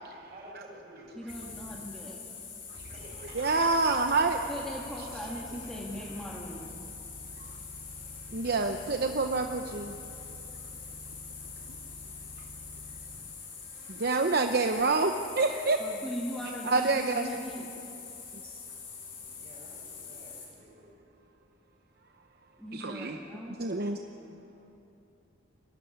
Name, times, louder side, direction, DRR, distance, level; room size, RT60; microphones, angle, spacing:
voice 1, 0.3-1.1 2.9-3.7 13.0-13.2 19.2-21.0, right 1 dB, 30° right, -3 dB, 6.9 m, -51 dB
voice 2, 1.2-2.2 4.5-6.8 15.8-17.7 22.6-23.6 24.2-24.3, equal, ahead, -4 dB, 1.8 m, -39 dB
sound 1, 1.3-20.5, left 4 dB, 60° left, 5.9 m, -44 dB
voice 3, 3.3-4.4 8.3-10.0 13.9-15.8 16.7-17.3 22.7-23.2 23.6-24.0, right 3 dB, 50° right, 5 dB, 0.8 m, -27 dB
23.5 x 14.0 x 9.9 m, 2.8 s
head